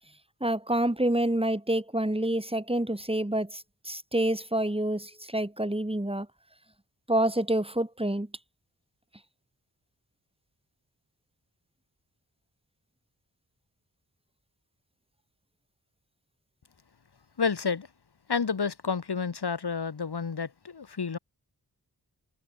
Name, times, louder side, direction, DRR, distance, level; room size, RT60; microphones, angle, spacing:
voice 1, 0.4-6.3 7.1-8.3, right 1 dB, 15° right, 5.9 m, -27 dB
voice 2, 17.4-17.9 18.3-21.2, left 5 dB, 75° left, 4.2 m, -30 dB
wide cardioid pair, 65°, 39 cm